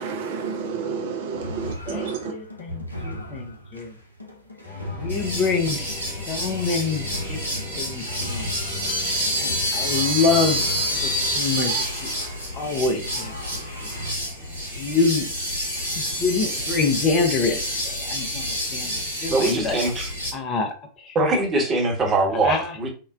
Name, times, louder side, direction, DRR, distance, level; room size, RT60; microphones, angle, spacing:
voice 1, 0.0-2.3, right 5 dB, 55° right, 0.4 m, -30 dB
sound 1, 1.3-14.1, equal, 90° left, 0.6 m, -38 dB
voice 2, 1.9-3.9 4.9-5.9 6.3-7.4 7.8-8.5 9.4-10.6 11.0-12.1 12.5-13.6 14.8-15.3 16.0-19.8 20.3-20.7 21.0-21.2 22.4-22.6, left 4 dB, 30° left, 0.5 m, -26 dB
sound 2, 4.6-11.4, left 5 dB, 10° left, 1.0 m, -38 dB
sound 3, 5.1-20.3, equal, 85° right, 0.8 m, -28 dB
voice 3, 19.3-20.1 21.1-22.9, right 2 dB, 25° right, 0.9 m, -22 dB
3.7 x 2.1 x 2.3 m
figure-of-eight pair, 90°, 0 cm